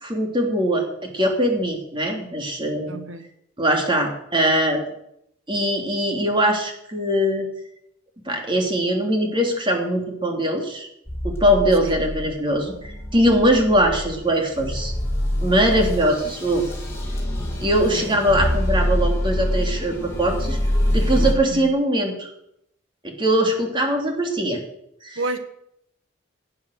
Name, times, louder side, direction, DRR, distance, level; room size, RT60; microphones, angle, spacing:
voice 1, 0.0-3.0 3.6-4.8 5.5-7.5 8.3-10.9 11.2-14.9 15.4-16.6 17.6-20.6 20.9-22.3 23.0-24.6 25.0-25.2, equal, 25° right, 3.0 m, -21 dB
voice 2, 2.9-3.3 11.8-11.9 17.9-18.2 21.1-21.7 25.2-25.4, right 2 dB, 80° right, 1.4 m, -30 dB
sound 1, 11.1-21.3, left 1 dB, 15° left, 3.8 m, -25 dB
16.5 x 9.7 x 6.5 m
head